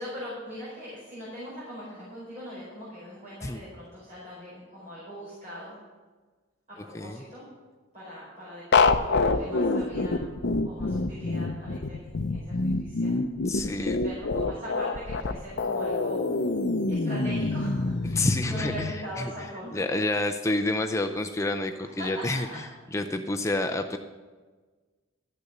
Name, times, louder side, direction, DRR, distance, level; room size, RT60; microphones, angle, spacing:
voice 1, 0.0-5.7 6.7-7.4 7.9-10.2 10.6-16.2 16.9-19.8 22.0-22.6, equal, 35° right, -9 dB, 4.8 m, -41 dB
sound 1, 8.7-18.9, left 3 dB, 55° left, 0.6 m, -26 dB
voice 2, 13.5-14.0 18.0-19.3 19.7-22.6 22.9-24.0, left 2 dB, 15° left, 5 dB, 0.4 m, -29 dB
13.5 x 6.7 x 7.9 m, 1.4 s
head